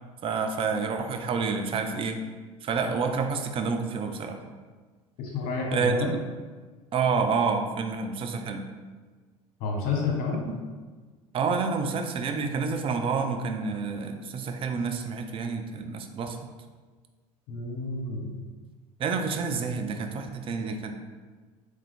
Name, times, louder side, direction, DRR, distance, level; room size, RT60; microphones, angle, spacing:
voice 1, 0.2-2.2 2.6-4.4 5.7-6.2 6.9-8.7 10.5-10.6 11.3-16.4 19.0-20.9, right 5 dB, 30° right, 5 dB, 0.5 m, -28 dB
voice 2, 5.2-6.1 9.6-10.4 17.5-18.3, left 4 dB, 55° left, 0 dB, 1.1 m, -29 dB
3.5 x 3.2 x 3.6 m, 1.4 s
hypercardioid pair, 75°, 19 cm